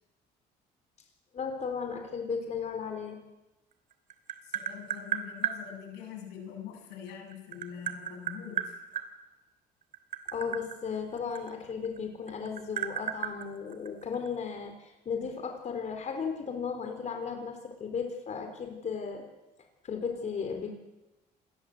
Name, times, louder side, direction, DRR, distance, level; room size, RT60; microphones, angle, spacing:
voice 1, 1.3-3.2 10.3-19.2 19.8-20.7, left 6 dB, 45° left, 5 dB, 4.1 m, -35 dB
Tap, 3.7-5.6 6.9-9.1 9.8-12.0 12.3-14.3, right 9 dB, 50° right, 3.0 m, -34 dB
voice 2, 4.4-8.8, left 8 dB, 90° left, 4 dB, 7.4 m, -44 dB
27.0 x 20.5 x 7.9 m, 1.0 s
cardioid pair, 110°, 17 cm